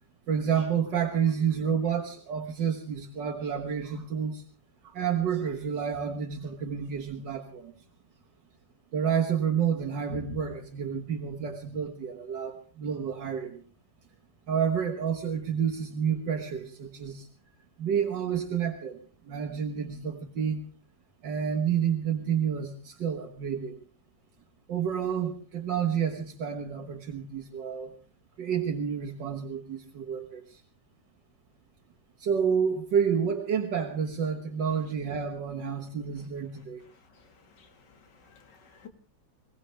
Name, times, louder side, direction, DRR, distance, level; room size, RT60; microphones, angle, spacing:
voice 1, 0.3-4.4 4.8-7.7 8.9-13.6 14.5-17.3 17.8-19.0 19.3-20.6 21.2-23.8 24.7-27.9 28.4-30.6 32.2-36.8, right 7 dB, 80° right, 3 dB, 2.1 m, -29 dB
voice 2, 37.1-38.9, left 8 dB, 70° left, 6 dB, 2.4 m, -55 dB
22.0 x 17.5 x 3.4 m, 0.37 s
omnidirectional pair, 1.9 m